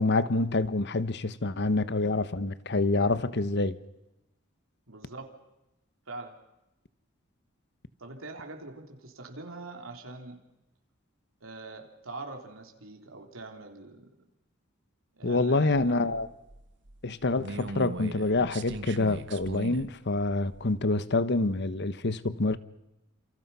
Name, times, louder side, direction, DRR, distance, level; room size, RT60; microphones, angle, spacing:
voice 1, 0.0-3.8 15.2-16.3 17.0-22.6, left 2 dB, 55° left, 1.1 m, -27 dB
voice 2, 4.9-5.3 6.1-6.4 8.0-10.4 11.4-14.2 15.1-16.2, right 2 dB, 85° right, 3.5 m, -43 dB
sound 1, 15.7-19.9 20.2-20.7, right 2 dB, 60° right, 1.4 m, -40 dB
30.0 x 28.0 x 5.6 m
head